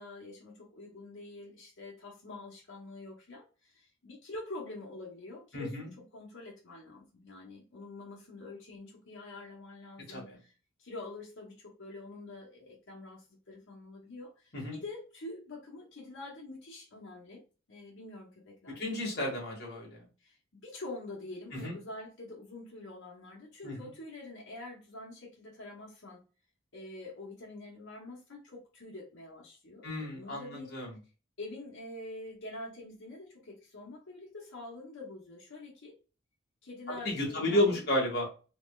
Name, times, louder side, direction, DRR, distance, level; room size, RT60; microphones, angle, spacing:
voice 1, 0.0-10.5 10.8-17.4 17.7-19.0 20.2-26.2 26.7-30.7 31.4-35.9 36.6-37.7 38.1-38.2, left 2 dB, 75° left, -4 dB, 1.0 m, -46 dB
voice 2, 5.5-5.8 10.1-10.4 14.5-14.8 18.8-20.1 21.5-21.8 23.6-23.9 29.8-30.9 37.0-38.3, left 1 dB, 50° left, -3 dB, 1.8 m, -32 dB
4.2 x 3.1 x 2.4 m, 0.34 s
head